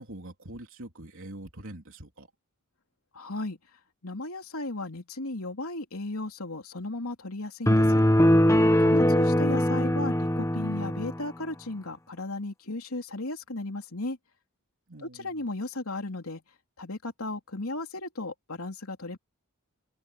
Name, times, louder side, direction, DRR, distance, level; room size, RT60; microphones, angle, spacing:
voice 1, 0.0-2.3 8.8-9.2 14.9-15.3, right 1 dB, 65° right, 3.8 m, -44 dB
voice 2, 3.1-3.6 4.0-8.0 8.8-14.2 15.0-16.4 16.8-19.2, left 2 dB, 85° left, 3.2 m, -35 dB
sound 1, 7.7-11.2, equal, 15° left, 1.3 m, -21 dB
open air
head